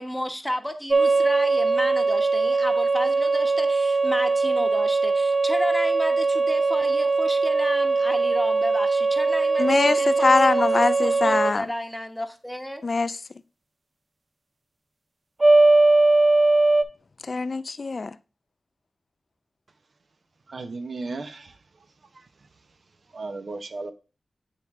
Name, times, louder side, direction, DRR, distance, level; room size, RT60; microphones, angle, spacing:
voice 1, 0.0-12.8, equal, 5° left, 1.0 m, -32 dB
sound 1, 0.9-11.6 15.4-16.8, right 3 dB, 40° right, 0.5 m, -20 dB
voice 2, 9.6-11.7 12.8-13.2 17.2-18.2, left 3 dB, 55° left, 0.4 m, -23 dB
voice 3, 20.5-21.6 22.1-22.3 23.1-23.9, right 3 dB, 65° right, 0.8 m, -35 dB
9.2 x 3.3 x 3.6 m
cardioid pair, 55°, 0 cm